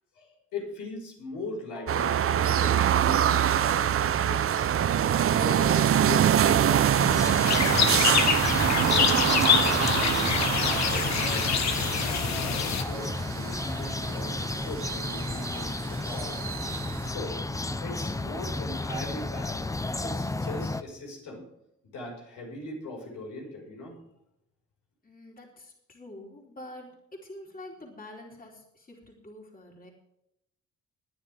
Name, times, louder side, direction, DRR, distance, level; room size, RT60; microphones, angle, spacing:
voice 1, 0.2-4.9 5.3-8.2 8.6-11.6 12.0-16.7 17.0-17.4 17.8-19.7 20.0-21.4 21.9-24.0, left 2 dB, 85° left, 0 dB, 5.4 m, -40 dB
sound 1, 1.9-17.1, right 9 dB, 45° right, 0.7 m, -25 dB
sound 2, 6.9-20.8, left 2 dB, 10° left, 0.7 m, -33 dB
sound 3, 7.4-12.8, left 8 dB, 65° left, 1.4 m, -26 dB
voice 2, 25.0-26.9 27.2-29.9, left 1 dB, 30° left, -1 dB, 3.9 m, -46 dB
21.0 x 10.0 x 3.6 m, 0.83 s
cardioid pair, 90°, 30 cm